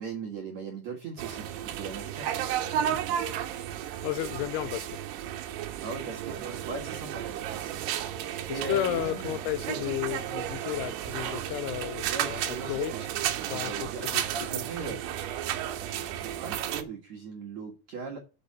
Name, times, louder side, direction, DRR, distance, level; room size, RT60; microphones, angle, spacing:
voice 1, 0.0-2.3 5.8-7.9 8.1-9.8 12.0-15.1 15.6-18.2, right 4 dB, 60° right, 1.9 m, -39 dB
sound 1, 1.2-16.8, right 11 dB, 75° right, 2.8 m, -33 dB
voice 2, 4.0-5.0 8.5-13.0 13.5-14.3 14.5-14.9, left 15 dB, 85° left, 3.1 m, -33 dB
6.6 x 6.0 x 7.2 m
omnidirectional pair, 5.4 m